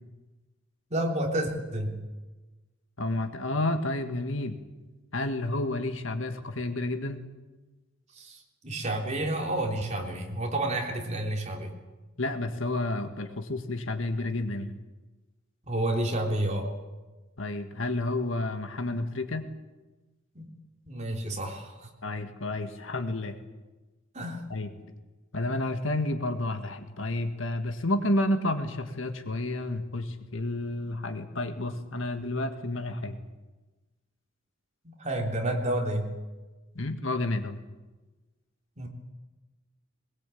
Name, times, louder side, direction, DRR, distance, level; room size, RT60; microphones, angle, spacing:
voice 1, 0.9-1.9 8.1-11.7 15.7-16.7 20.4-20.5 20.9-21.9 24.1-24.4 34.8-36.1 38.8-38.9, right 1 dB, 35° right, 1 dB, 3.5 m, -30 dB
voice 2, 3.0-4.6 5.1-7.2 12.2-14.7 17.4-19.4 22.0-23.3 24.5-24.7 25.3-33.2 36.8-37.6, left 2 dB, 70° left, 8 dB, 1.8 m, -30 dB
21.0 x 20.5 x 8.5 m, 1.2 s
head